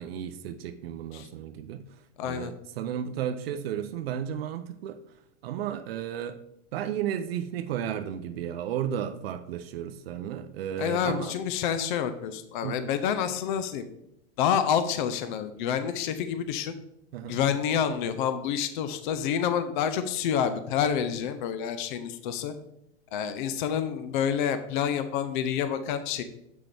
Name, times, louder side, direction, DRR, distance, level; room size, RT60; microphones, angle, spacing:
voice 1, 0.0-5.0 5.4-6.4 6.7-11.4 12.6-12.9 17.1-17.4, right 9 dB, 55° right, 9 dB, 0.6 m, -33 dB
voice 2, 2.2-2.5 10.8-13.9 14.4-16.7 17.3-22.5 23.1-26.2, left 8 dB, 45° left, 10 dB, 0.5 m, -28 dB
7.5 x 6.2 x 3.4 m, 0.79 s
supercardioid pair, 165°, 37 cm